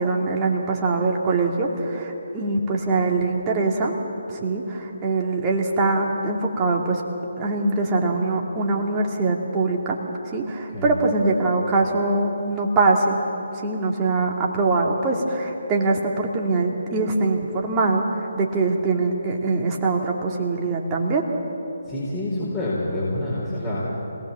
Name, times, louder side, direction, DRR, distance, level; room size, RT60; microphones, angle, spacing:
voice 1, 0.0-4.0 4.4-7.0 7.4-10.0 10.3-13.2 13.6-21.3, right 3 dB, 20° right, -1 dB, 2.7 m, -23 dB
voice 2, 21.9-23.8, left 1 dB, 15° left, -8 dB, 4.5 m, -27 dB
25.5 x 18.5 x 7.4 m, 3.0 s
figure-of-eight pair, 145°, 0 cm